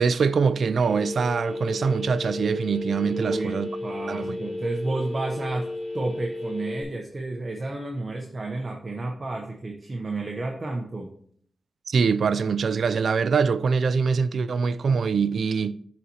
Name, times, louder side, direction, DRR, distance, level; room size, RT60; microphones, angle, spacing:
voice 1, 0.0-3.7 4.1-4.4 11.9-15.7, right 5 dB, 70° right, 0.3 m, -23 dB
Telephone, 0.8-6.8, left 2 dB, 5° right, 3.0 m, -33 dB
voice 2, 3.1-5.7 5.9-11.1, right 2 dB, 35° right, 0.8 m, -31 dB
12.0 x 4.1 x 2.8 m
wide cardioid pair, 130°, 0 cm